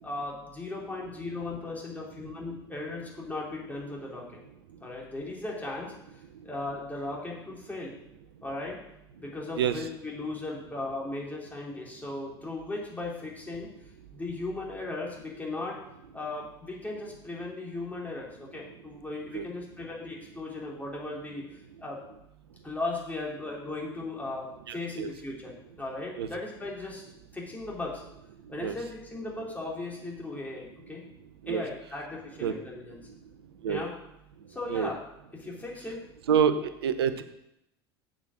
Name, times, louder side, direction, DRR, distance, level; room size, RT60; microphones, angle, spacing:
voice 1, 0.0-4.4 4.8-5.9 6.4-7.9 8.4-8.8 9.2-13.7 14.1-15.8 16.1-21.5 21.8-22.0 22.6-27.0 27.3-28.0 28.5-31.0 31.5-33.0 33.7-33.9 34.5-35.0 35.3-36.0, left 2 dB, 10° left, -3 dB, 3.6 m, -37 dB
voice 2, 9.6-9.9 19.3-19.4 24.7-25.1 26.2-26.3 28.6-28.7 31.4-31.6 32.4-32.5 33.6-33.8 34.7-34.9 36.3-36.5 36.8-37.2, right 8 dB, 75° right, 11 dB, 0.8 m, -26 dB
7.4 x 7.2 x 6.1 m, 0.82 s
figure-of-eight pair, 75°, 13 cm